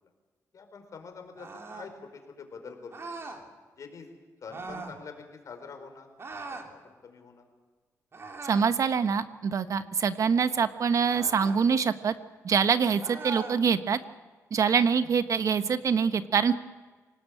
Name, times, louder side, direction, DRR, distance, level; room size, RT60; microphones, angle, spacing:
voice 1, 0.5-3.0 3.8-4.1 4.4-5.1 5.4-6.4 6.7-7.4 15.0-15.1, left 5 dB, 60° left, 5 dB, 4.7 m, -45 dB
sound 1, 1.4-1.9 2.9-3.4 4.5-5.0 6.2-6.7 8.1-8.8 11.0-11.6 13.0-13.6, right 3 dB, 40° right, 3.2 m, -40 dB
voice 2, 8.4-12.1 12.4-14.0 14.5-16.6, right 6 dB, 60° right, 11 dB, 1.2 m, -25 dB
27.0 x 18.5 x 8.7 m, 1.4 s
cardioid pair, 105°, 6 cm